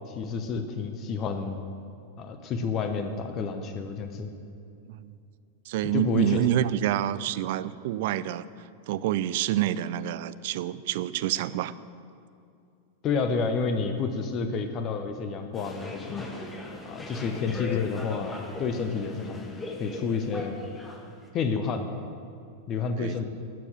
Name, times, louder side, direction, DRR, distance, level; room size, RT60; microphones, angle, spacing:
voice 1, 0.1-1.6 2.2-4.3 5.8-6.4 13.0-16.3 16.8-19.4 19.8-20.5 21.3-21.9 22.7-23.3, left 5 dB, 35° left, 7 dB, 0.9 m, -30 dB
voice 2, 5.7-8.4 8.9-11.7 23.0-23.3, right 12 dB, 50° right, 16 dB, 0.4 m, -27 dB
sound 1, 15.5-21.3, left 2 dB, 10° left, 1.5 m, -39 dB
12.0 x 7.2 x 8.8 m, 2.5 s
figure-of-eight pair, 90°, 0 cm